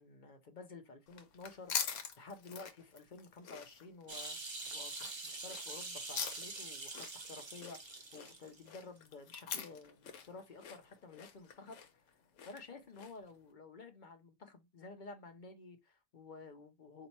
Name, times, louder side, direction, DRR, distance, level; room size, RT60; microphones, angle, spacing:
voice 1, 0.0-4.4 4.7-11.8 12.4-17.1, left 3 dB, 50° left, 0.7 m, -52 dB
sound 1, 1.1-13.3, left 7 dB, 70° left, 1.0 m, -45 dB
sound 2, 4.1-8.6 9.0-9.1, right 3 dB, 30° right, 0.5 m, -45 dB
4.1 x 2.6 x 4.4 m
omnidirectional pair, 1.4 m